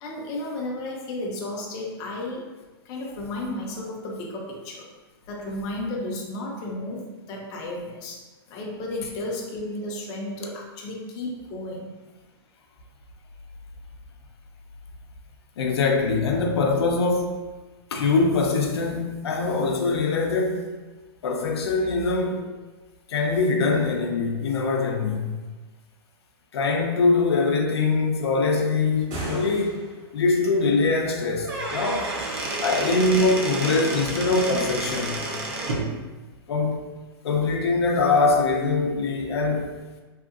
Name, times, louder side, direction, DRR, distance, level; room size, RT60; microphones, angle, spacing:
voice 1, 0.0-2.4 2.8-4.9 5.3-8.2 8.5-11.9, left 1 dB, 30° left, -2 dB, 0.4 m, -33 dB
voice 2, 15.6-17.4 17.9-20.7 21.2-22.4 23.1-25.4 26.5-29.8 30.1-32.1 32.6-35.2 36.5-36.8 37.2-39.7, left 3 dB, 85° left, 2 dB, 0.5 m, -23 dB
sound 1, 28.9-30.2, right 1 dB, 45° right, 0.9 m, -35 dB
Squeak / Wood, 31.3-35.9, right 2 dB, 80° right, 0.7 m, -30 dB
2.7 x 2.5 x 2.4 m, 1.2 s
hypercardioid pair, 150°, 13 cm